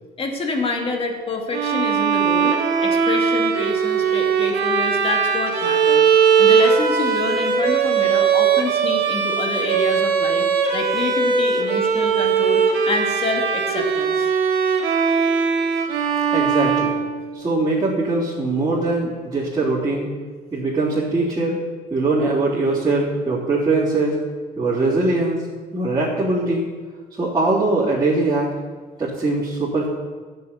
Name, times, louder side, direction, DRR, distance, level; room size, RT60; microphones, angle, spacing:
voice 1, 0.2-2.5 2.8-10.5 10.7-14.3, left 2 dB, 35° left, 2 dB, 2.3 m, -27 dB
Bowed string instrument, 1.5-17.6, right 6 dB, 75° right, 2.1 m, -19 dB
voice 2, 16.3-17.0 17.3-20.1 20.5-21.6 21.9-24.2 24.6-25.4 25.7-26.7 27.1-28.5 29.0-29.9, right 2 dB, 25° right, -10 dB, 3.6 m, -21 dB
11.5 x 6.8 x 8.3 m, 1.5 s
cardioid pair, 110°, 17 cm